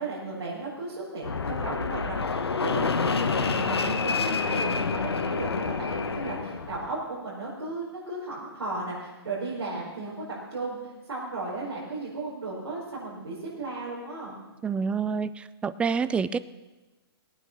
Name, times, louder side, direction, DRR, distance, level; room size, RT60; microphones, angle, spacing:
voice 1, 0.0-14.4, right 3 dB, 85° right, -8 dB, 4.9 m, -35 dB
Fixed-wing aircraft airplane, 1.2-6.9, left 4 dB, 90° left, 1.2 m, -28 dB
voice 2, 14.6-16.4, right 5 dB, 10° right, 16 dB, 0.4 m, -27 dB
18.0 x 9.0 x 6.1 m, 1.1 s
hypercardioid pair, 130°, 13 cm